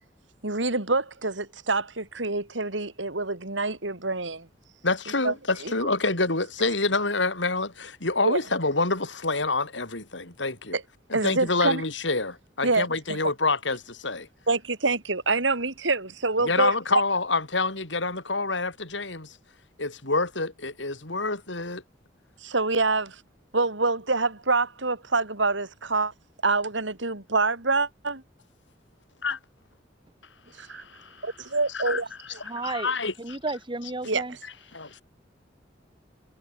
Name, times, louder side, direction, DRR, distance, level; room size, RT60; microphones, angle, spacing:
voice 1, 0.4-4.5 5.2-5.3 5.6-5.7 8.2-8.4 10.7-10.8 11.1-11.8 12.6-13.2 14.5-16.8 22.4-23.2 23.5-26.1 26.4-28.2 30.6-30.8 31.2-32.4 34.1-34.2, right 3 dB, 90° right, 3.9 m, -26 dB
voice 2, 4.8-10.8 11.1-14.3 16.4-19.4 19.8-21.8 29.2-29.4 30.7-31.3 31.7-32.0 32.4-33.1 34.7-35.0, left 3 dB, 80° left, 5.0 m, -27 dB
voice 3, 32.4-32.9 33.2-34.4 34.7-34.8, right 2 dB, 25° right, 1.6 m, -33 dB
head